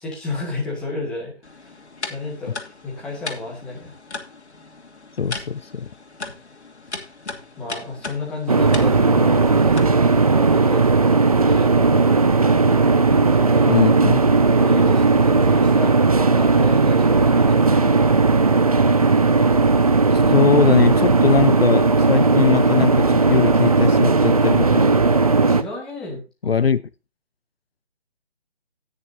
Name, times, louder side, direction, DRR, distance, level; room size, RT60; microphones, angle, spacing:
voice 1, 0.0-1.8 2.1-2.6 2.8-4.0 7.6-9.8 10.3-11.7 13.1-14.0 14.6-17.9 25.4-26.5, left 3 dB, 5° left, 1.8 m, -32 dB
sound 1, 1.4-10.2, left 3 dB, 85° left, 2.8 m, -37 dB
voice 2, 5.2-5.9 13.7-14.3 20.1-25.0 26.4-26.8, left 6 dB, 65° left, 0.7 m, -20 dB
sound 2, 8.5-25.6, right 3 dB, 35° right, 0.7 m, -16 dB
18.5 x 6.5 x 2.7 m
figure-of-eight pair, 170°, 33 cm